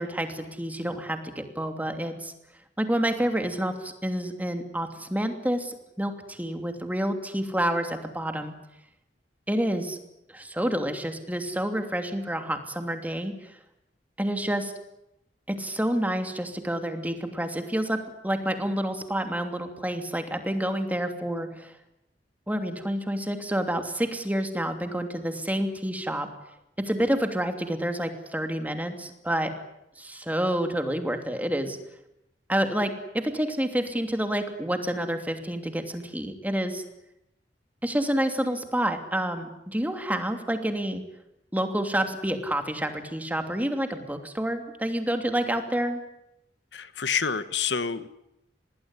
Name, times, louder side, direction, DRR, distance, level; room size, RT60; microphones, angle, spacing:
voice 1, 0.0-2.3 2.8-8.5 9.5-10.0 10.3-13.6 14.2-14.7 15.5-21.7 22.5-26.3 26.8-29.5 30.0-31.8 32.5-36.8 37.8-41.0 41.5-46.0, right 1 dB, 10° right, 6 dB, 2.9 m, -28 dB
voice 2, 46.7-48.1, left 6 dB, 80° left, 13 dB, 1.4 m, -28 dB
26.5 x 20.5 x 9.9 m, 0.85 s
head